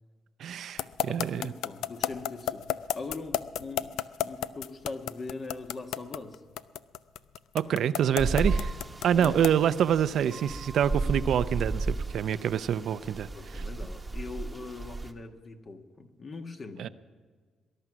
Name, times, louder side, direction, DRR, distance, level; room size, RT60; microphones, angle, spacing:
voice 1, 0.4-1.5 7.5-8.7 9.0-13.3 13.5-13.6 16.8-16.9, right 9 dB, 70° right, 13 dB, 0.5 m, -26 dB
sound 1, 0.8-9.6, left 12 dB, 85° left, 0.4 m, -31 dB
voice 2, 1.1-6.4 9.1-9.4 13.3-16.9, left 3 dB, 40° left, 5 dB, 1.4 m, -41 dB
sound 2, 8.2-15.1, right 3 dB, 15° right, 1.1 m, -34 dB
20.0 x 11.0 x 6.1 m, 1.5 s
cardioid pair, 90°, 0 cm